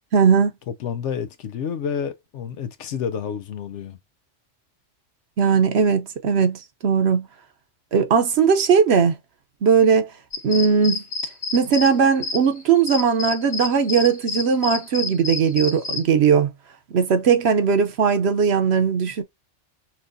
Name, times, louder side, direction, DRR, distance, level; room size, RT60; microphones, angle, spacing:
voice 1, 0.1-0.5 5.4-7.3 7.9-9.2 9.6-10.1 10.4-11.0 11.5-16.5 16.9-19.2, right 6 dB, 65° right, 1.0 m, -18 dB
voice 2, 0.7-4.0, left 7 dB, 75° left, 1.0 m, -29 dB
sound 1, 10.3-16.0, left 4 dB, 35° left, 0.7 m, -29 dB
5.9 x 2.5 x 2.6 m
omnidirectional pair, 1.2 m